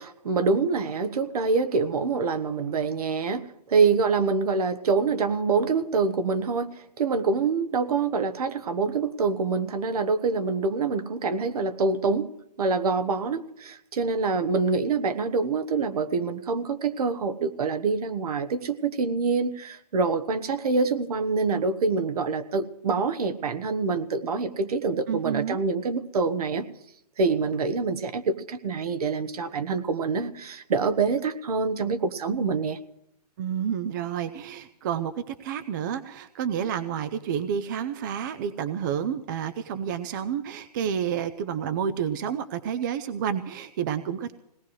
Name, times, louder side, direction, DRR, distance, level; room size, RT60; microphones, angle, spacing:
voice 1, 0.0-6.7 7.0-12.3 12.6-26.7 27.2-32.8, right 4 dB, 60° right, 11 dB, 1.3 m, -26 dB
voice 2, 25.1-25.6 33.4-44.3, right 8 dB, 30° right, 12 dB, 0.6 m, -30 dB
21.5 x 18.5 x 3.2 m, 0.79 s
hypercardioid pair, 155°, 21 cm